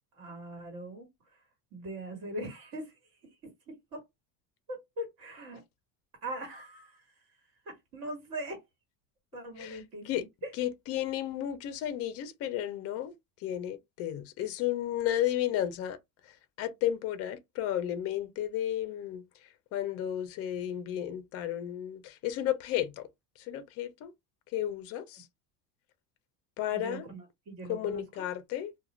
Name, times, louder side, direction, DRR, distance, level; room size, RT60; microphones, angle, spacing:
voice 1, 0.1-1.4 1.7-3.4 3.9-4.0 4.7-5.6 6.2-7.0 7.6-8.6 9.3-10.5 26.7-28.2, right 1 dB, 50° right, 1.5 m, -41 dB
voice 2, 10.6-13.1 13.4-16.0 16.6-19.2 19.7-23.0 23.5-24.1 24.5-25.2 26.6-27.1 27.7-28.7, left 11 dB, 35° left, 0.4 m, -33 dB
2.4 x 2.2 x 3.0 m
cardioid pair, 150°, 45 cm